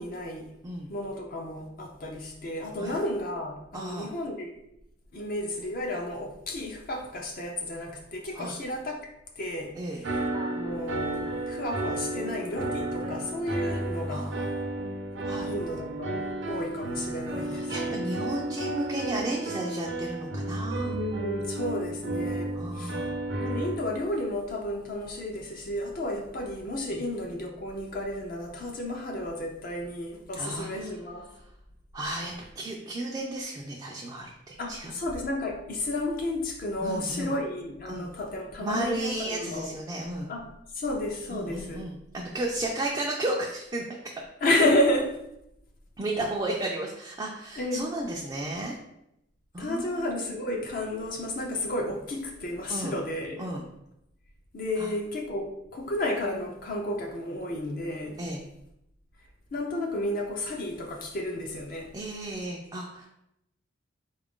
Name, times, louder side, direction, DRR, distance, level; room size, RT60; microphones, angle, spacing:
voice 1, 0.0-0.5 0.9-4.5 5.1-9.1 9.4-14.3 15.5-16.2 16.5-17.7 20.8-23.0 23.4-31.2 34.6-39.7 40.3-40.5 40.7-41.9 44.4-45.2 47.6-47.9 49.6-53.4 54.5-58.2 59.5-61.9, left 1 dB, 50° left, 0 dB, 0.5 m, -32 dB
voice 2, 3.7-4.1 8.3-8.5 9.7-10.0 14.1-14.5 15.2-15.5 17.4-21.0 22.5-23.2 26.9-27.0 30.3-31.0 31.9-34.9 36.8-37.3 37.9-38.1 38.6-40.3 41.3-43.8 44.1-44.2 46.0-48.8 49.5-50.2 52.7-53.0 53.4-53.6 54.8-54.9 58.2-58.4 61.9-63.1, right 1 dB, 20° right, -2 dB, 0.3 m, -33 dB
sound 1, 10.0-23.8, right 1 dB, 70° right, 0.6 m, -32 dB
3.8 x 2.4 x 3.6 m, 0.83 s
head